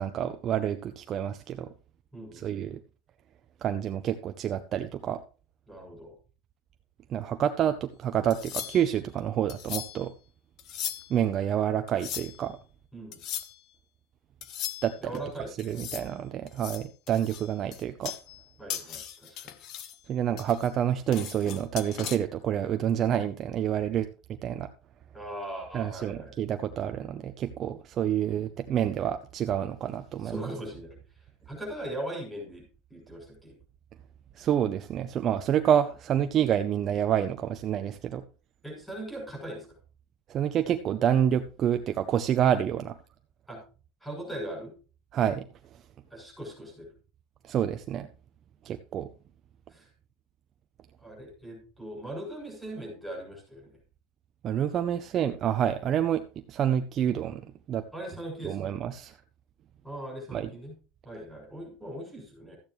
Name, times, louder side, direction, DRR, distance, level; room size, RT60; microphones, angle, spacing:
voice 1, 0.0-1.7 2.3-2.8 3.6-5.2 7.1-10.1 11.1-12.6 14.8-15.1 15.6-18.1 20.1-24.7 25.7-30.5 34.3-38.2 40.3-43.0 45.1-45.5 45.7-45.8 47.4-48.1 48.6-49.1 54.4-57.8 58.4-59.1 60.3-60.5, right 10 dB, 30° right, 8 dB, 0.6 m, -28 dB
voice 2, 2.1-2.7 5.7-6.1 12.9-13.2 15.0-16.1 18.6-19.5 25.1-26.3 28.2-28.4 30.2-31.0 31.4-32.6 32.9-33.6 38.6-39.7 43.5-43.6 44.0-44.7 46.1-46.9 49.7-49.9 51.0-53.8 57.9-58.7 59.8-60.7 61.0-62.6, right 1 dB, 5° left, 0 dB, 6.6 m, -40 dB
sound 1, 8.3-9.0 9.5-10.1 10.6-11.2 11.9-12.5 13.1-13.6 14.4-15.2 15.6-16.1 16.5-18.4 18.7-20.0 20.4-22.2, left 10 dB, 45° left, 1.0 m, -38 dB
14.0 x 8.8 x 3.1 m, 0.36 s
supercardioid pair, 155°, 0 cm